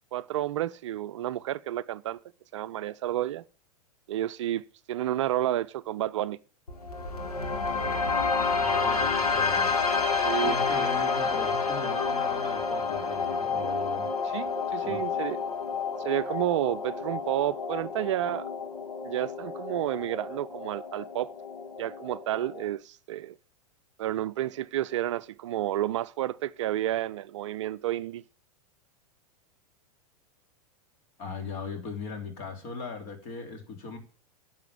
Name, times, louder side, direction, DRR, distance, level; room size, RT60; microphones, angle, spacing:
voice 1, 0.1-2.2 2.5-3.4 4.1-6.4 10.2-10.9 14.3-15.4 16.0-18.5 19.0-21.3 21.8-23.4 24.0-28.2, right 13 dB, 55° right, 0.5 m, -30 dB
sound 1, 6.7-22.7, left 4 dB, 80° left, 2.2 m, -29 dB
voice 2, 8.6-9.7 10.2-14.1 14.8-15.0 31.2-34.0, left 4 dB, 40° left, 3.3 m, -38 dB
10.5 x 7.4 x 8.6 m
figure-of-eight pair, 100°, 19 cm